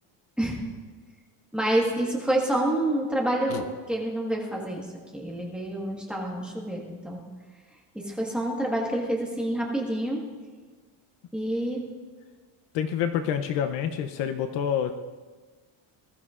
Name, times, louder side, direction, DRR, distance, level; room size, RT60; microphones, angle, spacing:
voice 1, 1.5-4.9 5.1-7.2 7.9-10.2 11.3-11.8, right 1 dB, ahead, -3 dB, 1.4 m, -28 dB
voice 2, 12.7-14.9, left 8 dB, 60° left, 8 dB, 0.7 m, -27 dB
20.5 x 13.5 x 2.4 m, 1.4 s
cardioid pair, 175°, 49 cm